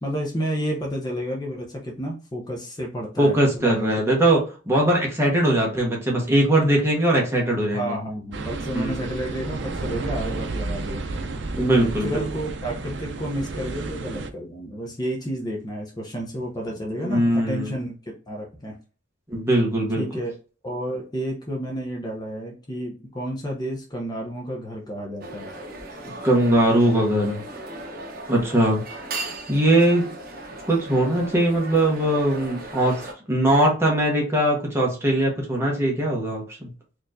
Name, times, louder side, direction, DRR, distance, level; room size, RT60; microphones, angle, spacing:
voice 1, 0.0-3.9 7.7-11.0 11.6-17.9 18.3-18.7 20.0-20.3 20.6-25.5, right 1 dB, 20° left, -1 dB, 0.7 m, -31 dB
voice 2, 3.2-4.4 4.7-8.0 8.7-9.1 11.5-12.2 17.0-17.7 19.3-20.0 26.2-27.4 28.3-28.8 29.5-30.1 30.7-33.0 33.3-36.7, right 1 dB, 15° right, -2 dB, 1.1 m, -21 dB
sound 1, 8.3-14.3, right 3 dB, 65° right, 0.5 m, -31 dB
sound 2, 25.2-33.1, right 2 dB, 50° right, 0.9 m, -37 dB
4.3 x 3.1 x 2.6 m, 0.35 s
head